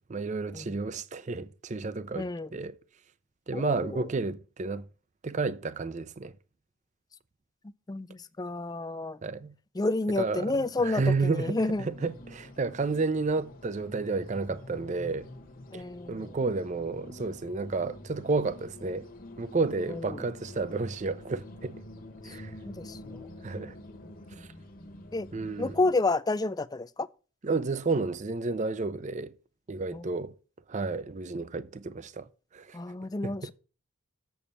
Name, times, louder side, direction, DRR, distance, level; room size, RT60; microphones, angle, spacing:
voice 1, 0.1-2.7 3.5-4.9 5.2-6.3 9.2-9.5 10.2-15.3 15.7-19.1 19.4-21.8 22.2-22.5 23.4-23.7 24.4-24.5 25.3-25.8 27.4-29.3 29.7-30.3 30.7-32.3 32.5-32.8 33.2-33.5, right 3 dB, 35° right, 0.5 m, -31 dB
voice 2, 2.1-2.5 3.5-4.1 7.9-9.2 9.8-11.9 15.7-16.3 19.9-20.2 22.2-22.3 22.6-23.3 25.1-25.3 25.6-27.1 29.9-30.0 32.7-33.5, left 2 dB, 20° left, 0.4 m, -30 dB
sound 1, 11.7-25.9, left 1 dB, 40° left, 1.2 m, -47 dB
7.3 x 7.0 x 6.8 m
head